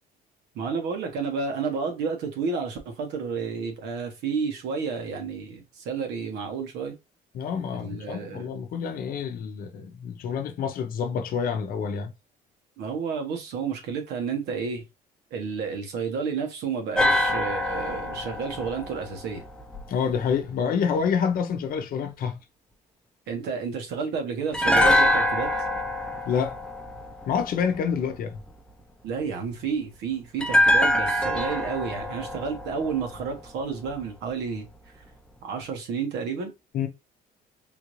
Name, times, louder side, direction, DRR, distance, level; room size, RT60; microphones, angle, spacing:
voice 1, 0.5-7.0 7.7-8.6 12.8-14.8 15.3-19.4 23.3-25.5 29.0-34.7 35.4-36.5, right 5 dB, 85° right, 1.1 m, -31 dB
voice 2, 7.3-12.1 19.9-22.4 26.3-26.6 27.3-28.4 36.7-36.9, left 7 dB, 60° left, 0.7 m, -27 dB
sound 1, 17.0-20.1 24.5-27.8 30.4-33.6 33.9-34.0, left 1 dB, 5° left, 0.5 m, -25 dB
3.6 x 2.4 x 3.1 m
cardioid pair, 110°, 17 cm